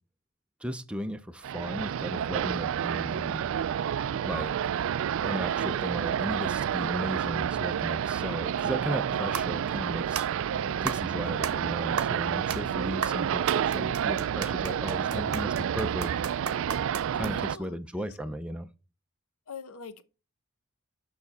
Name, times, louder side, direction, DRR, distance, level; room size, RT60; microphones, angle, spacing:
voice 1, 0.6-3.5 4.2-4.5 5.2-10.3 10.8-16.1 17.1-18.7, equal, 5° right, 0.5 m, -35 dB
sound 1, 1.4-17.6, right 9 dB, 60° right, 0.3 m, -29 dB
sound 2, 9.0-17.6, right 7 dB, 90° right, 0.8 m, -38 dB
voice 2, 10.5-11.1 14.9-15.8 17.3-18.2 19.5-20.0, left 4 dB, 80° left, 1.0 m, -45 dB
6.8 x 5.9 x 4.1 m
head